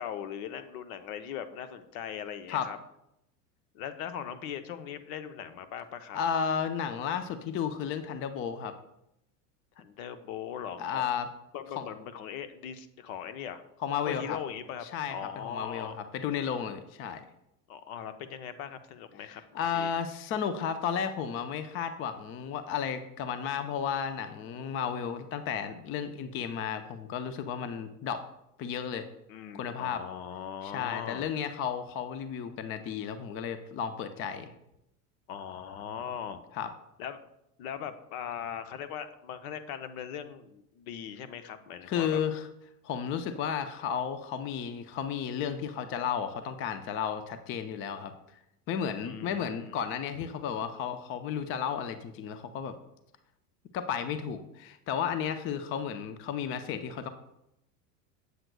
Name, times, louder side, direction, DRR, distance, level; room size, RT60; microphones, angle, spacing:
voice 1, 0.0-2.8 3.7-6.2 9.8-11.2 11.5-13.6 14.1-14.8 15.1-16.0 17.7-19.9 29.3-31.3 35.3-36.4 37.0-37.2 37.6-42.2 49.0-49.7, left 8 dB, 60° left, 10 dB, 0.8 m, -40 dB
voice 2, 6.1-8.7 10.8-11.3 11.8-11.9 13.8-14.4 14.9-17.2 19.2-28.2 28.6-29.1 29.5-30.0 30.6-34.5 36.5-36.7 41.9-42.5 42.8-48.1 48.7-52.8 53.7-57.1, left 7 dB, 30° left, 10 dB, 0.4 m, -33 dB
7.9 x 7.5 x 2.3 m, 0.82 s
hypercardioid pair, 90°, 48 cm